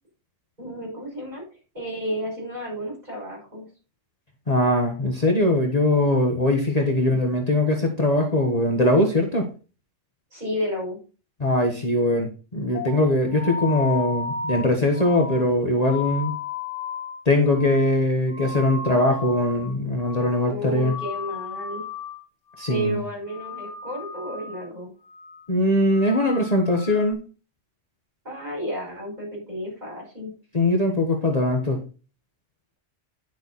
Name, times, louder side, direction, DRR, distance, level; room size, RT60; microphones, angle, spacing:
voice 1, 0.6-1.4 1.7-3.7 6.8-7.2 10.3-11.0 20.4-21.8 22.7-24.9 28.2-30.3, equal, 35° right, -2 dB, 6.1 m, -32 dB
voice 2, 4.5-9.5 11.4-16.3 17.2-20.9 22.6-23.0 25.5-27.2 30.5-31.8, left 1 dB, 30° left, 1 dB, 1.5 m, -21 dB
sound 1, 12.7-19.7 20.0-20.5 20.8-22.2 22.5-23.0 23.3-24.7 25.1-25.4 25.8-27.1, left 5 dB, 75° left, 1.8 m, -35 dB
10.5 x 6.7 x 4.1 m, 0.33 s
omnidirectional pair, 1.3 m